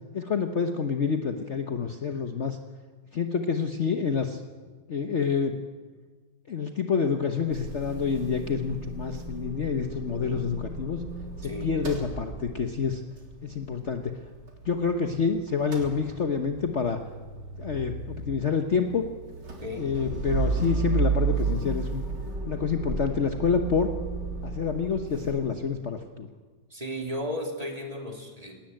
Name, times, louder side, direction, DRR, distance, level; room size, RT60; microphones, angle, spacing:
voice 1, 0.1-2.6 3.1-4.4 4.9-5.6 6.5-11.0 11.4-13.0 13.4-14.1 14.6-17.0 17.6-19.1 19.8-22.0 22.5-23.9 24.4-26.3, left 5 dB, 45° left, 6 dB, 1.2 m, -28 dB
Motor vehicle (road) / Engine starting / Idling, 7.5-15.2 15.5-25.3, right 4 dB, 80° right, 4.1 m, -33 dB
voice 2, 26.7-28.6, equal, 20° right, 2 dB, 3.0 m, -34 dB
19.5 x 18.0 x 9.1 m, 1.4 s
omnidirectional pair, 1.9 m